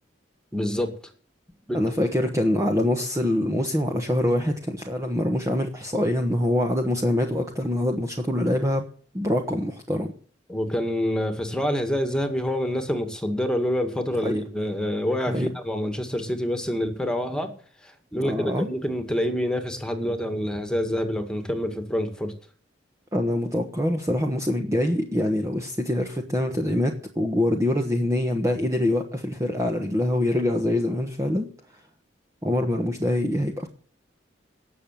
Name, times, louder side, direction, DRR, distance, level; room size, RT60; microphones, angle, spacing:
voice 1, 0.5-0.9 1.7-1.8 10.5-17.5 18.1-22.3, equal, 5° left, 7 dB, 2.0 m, -27 dB
voice 2, 1.7-8.9 9.1-10.1 14.2-14.4 15.3-15.5 18.1-18.7 23.1-31.5 32.4-33.7, left 1 dB, 15° right, 3 dB, 1.2 m, -24 dB
18.0 x 7.0 x 7.5 m, 0.43 s
head